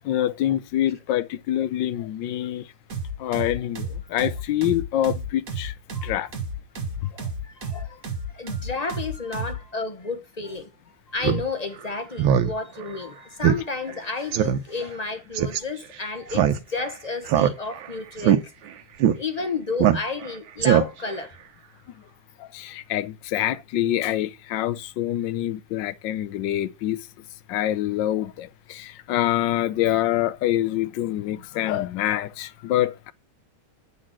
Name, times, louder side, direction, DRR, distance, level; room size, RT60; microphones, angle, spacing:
voice 1, 0.0-2.7 3.2-5.7 6.0-6.3 7.0-7.3 7.7-7.9 22.4-27.1 27.5-33.1, left 13 dB, 70° left, 1.3 m, -26 dB
sound 1, 2.9-9.6, right 2 dB, 45° right, 1.6 m, -32 dB
voice 2, 7.4-8.0 8.3-10.7 11.1-18.5 19.1-21.4 23.5-23.6, left 3 dB, 35° left, 0.6 m, -31 dB
Speech synthesizer, 11.2-11.4 11.8-11.9 12.2-12.5 12.8-12.9 13.4-13.6 13.9-14.0 14.3-14.6 15.4-15.6 16.3-16.9 17.3-17.9 18.2-18.4 19.0-19.2 19.8-20.3 20.6-21.1, right 10 dB, 80° right, 1.6 m, -20 dB
9.5 x 4.1 x 7.4 m
omnidirectional pair, 2.2 m